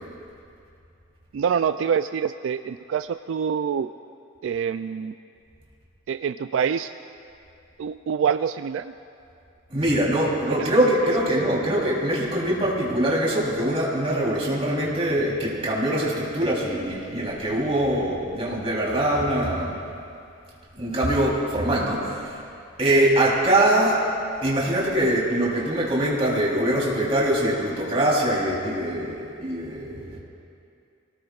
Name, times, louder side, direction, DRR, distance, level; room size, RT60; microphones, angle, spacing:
voice 1, 1.3-3.9 4.4-5.1 6.1-6.9 7.8-8.9 10.6-10.7 11.3-11.4, right 7 dB, 75° right, 10 dB, 0.3 m, -26 dB
voice 2, 9.7-19.8 20.8-22.4 22.8-24.0 24.4-30.2, right 1 dB, 30° right, -5 dB, 3.4 m, -23 dB
25.5 x 18.0 x 2.4 m, 2.5 s
head